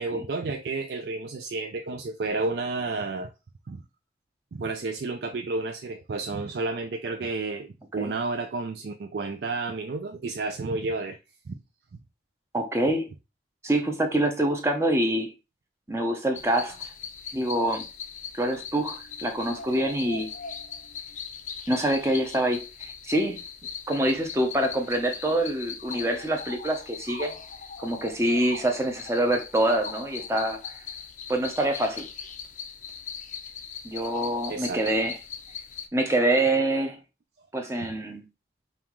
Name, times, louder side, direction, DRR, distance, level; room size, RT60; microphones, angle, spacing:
voice 1, 0.0-3.3 3.7-3.8 4.5-11.2 11.5-11.6 34.5-34.8, right 3 dB, 70° right, 0.4 m, -31 dB
voice 2, 12.5-13.1 13.6-15.3 15.9-16.9 17.3-17.8 18.3-20.3 21.7-23.4 23.9-27.3 27.8-30.6 31.3-32.1 33.8-35.2 35.9-37.0 37.5-38.2, right 1 dB, 15° right, 0.6 m, -25 dB
sound 1, 16.3-35.9, left 6 dB, 45° left, 0.4 m, -40 dB
5.4 x 2.4 x 3.0 m
head